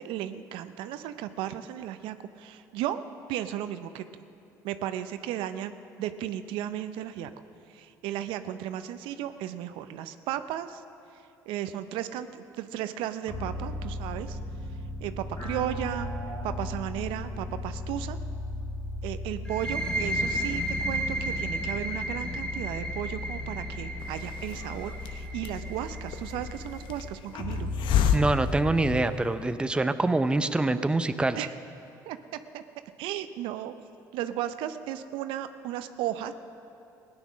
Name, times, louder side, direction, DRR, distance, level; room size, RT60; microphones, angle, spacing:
voice 1, 0.0-3.0 3.3-4.0 4.6-5.7 6.0-7.3 7.7-10.8 11.5-14.4 15.0-16.1 16.4-18.2 19.0-27.7 31.4-31.5 32.1-32.2 32.5-32.6 33.0-33.7 34.1-36.3, right 11 dB, 75° right, 11 dB, 0.6 m, -34 dB
sound 1, 13.3-29.1, left 2 dB, 35° left, 3.2 m, -36 dB
sound 2, 19.5-26.9, right 1 dB, 10° left, 2.0 m, -34 dB
Hiss, 24.0-29.5, left 8 dB, 65° left, 0.8 m, -32 dB
voice 2, 28.1-31.4, right 2 dB, 10° right, 11 dB, 0.6 m, -25 dB
16.5 x 9.8 x 6.1 m, 2.6 s
supercardioid pair, 75°, 9 cm